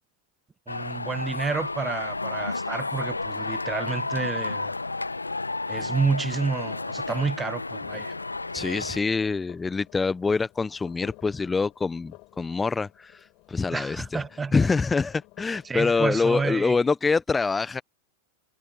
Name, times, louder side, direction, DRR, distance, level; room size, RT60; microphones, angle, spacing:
sound 1, 0.7-9.0, left 3 dB, 80° left, 1.9 m, -32 dB
voice 1, 0.7-4.7 5.7-8.1 13.7-14.7 15.6-16.8, right 4 dB, 15° right, 1.9 m, -30 dB
sound 2, 7.5-16.1, left 24 dB, 40° left, 7.3 m, -53 dB
voice 2, 8.5-14.2 14.5-17.8, left 4 dB, 15° left, 1.2 m, -25 dB
figure-of-eight pair, 90°, 0 cm